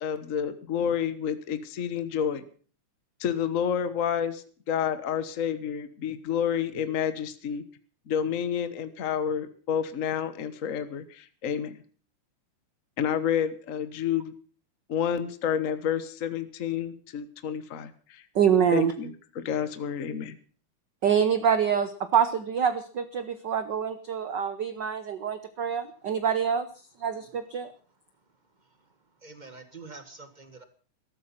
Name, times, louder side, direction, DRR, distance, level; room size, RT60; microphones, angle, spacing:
voice 1, 0.0-2.4 3.2-7.6 8.1-11.8 13.0-14.3 14.9-18.2 18.7-20.4, left 8 dB, 65° left, 12 dB, 0.7 m, -29 dB
voice 2, 18.3-18.9 21.0-26.7 27.0-27.7, right 8 dB, 70° right, 11 dB, 1.0 m, -25 dB
voice 3, 28.6-30.6, right 3 dB, 35° right, 9 dB, 0.7 m, -47 dB
14.5 x 13.0 x 5.8 m, 0.41 s
omnidirectional pair, 3.3 m